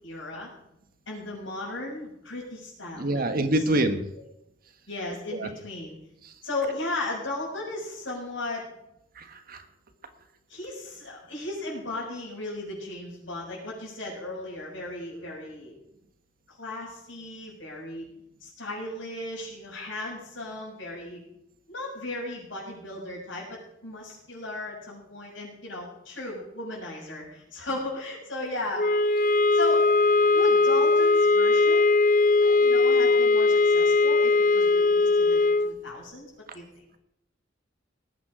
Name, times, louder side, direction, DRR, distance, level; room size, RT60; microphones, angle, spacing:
voice 1, 0.0-0.5 1.1-3.2 3.5-3.6 4.9-6.0 6.4-8.7 10.5-15.8 16.5-18.1 18.4-21.2 21.7-28.9 29.5-32.0 32.4-35.4 35.6-36.3 36.5-36.6, left 2 dB, 80° left, -2 dB, 6.6 m, -36 dB
voice 2, 3.0-4.0 5.3-5.5 6.2-6.3 9.1-9.6, right 1 dB, 50° right, 8 dB, 1.3 m, -26 dB
sound 1, 28.8-35.7, left 3 dB, 45° left, 0.6 m, -20 dB
19.0 x 9.1 x 4.9 m, 0.83 s
head